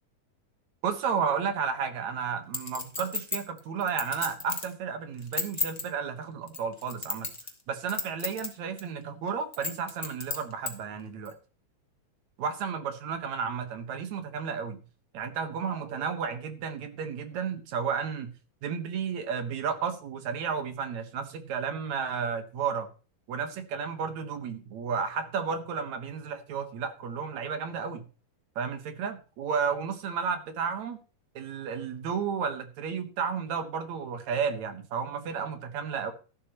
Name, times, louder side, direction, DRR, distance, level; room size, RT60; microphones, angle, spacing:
voice 1, 0.8-7.3 7.7-11.4 12.4-14.8 15.1-18.3 18.6-22.9 23.3-28.0 28.6-31.0 31.4-36.1, right 6 dB, 65° right, 2.5 m, -32 dB
Chink clink, 2.5-4.7 5.2-5.8 6.5-7.6 7.9-8.5 8.8-8.9 9.5-10.7 11.3-11.4, left 3 dB, 15° left, 1.7 m, -32 dB
14.0 x 12.0 x 3.0 m
omnidirectional pair, 3.7 m